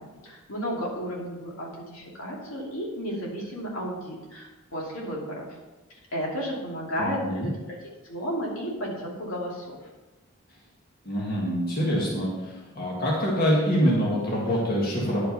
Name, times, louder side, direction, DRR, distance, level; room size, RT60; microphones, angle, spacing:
voice 1, 0.0-5.6 5.9-7.8 8.0-9.8, equal, 75° left, -3 dB, 2.6 m, -33 dB
voice 2, 7.0-7.5 11.1-15.3, equal, 45° left, -4 dB, 1.8 m, -25 dB
10.0 x 5.7 x 5.4 m, 1.1 s
head